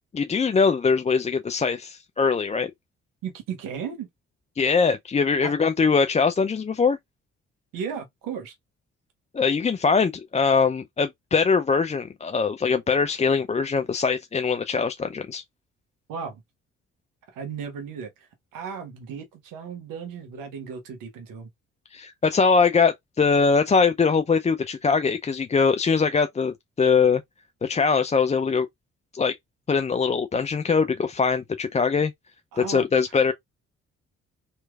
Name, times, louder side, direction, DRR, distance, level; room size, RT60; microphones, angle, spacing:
voice 1, 0.1-2.7 4.6-7.0 9.3-15.4 21.9-27.2 27.6-28.7 29.1-29.4 29.7-32.1 32.6-33.3, left 5 dB, 20° left, 0.4 m, -22 dB
voice 2, 3.2-4.1 5.4-5.5 7.7-8.5 16.1-16.4 17.3-21.5 32.5-32.8, right 6 dB, 75° right, 1.3 m, -35 dB
3.2 x 3.0 x 2.3 m
hypercardioid pair, 40°, 34 cm